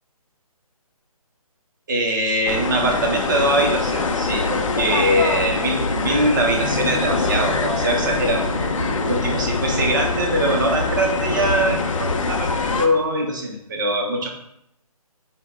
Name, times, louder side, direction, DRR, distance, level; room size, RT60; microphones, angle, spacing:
voice 1, 1.9-14.3, right 1 dB, 30° right, 0 dB, 0.5 m, -22 dB
sound 1, 2.5-12.9, left 4 dB, 60° left, 0.4 m, -24 dB
sound 2, 5.7-11.0, equal, 85° right, 0.8 m, -32 dB
3.8 x 2.1 x 3.3 m, 0.76 s
figure-of-eight pair, 150°, 19 cm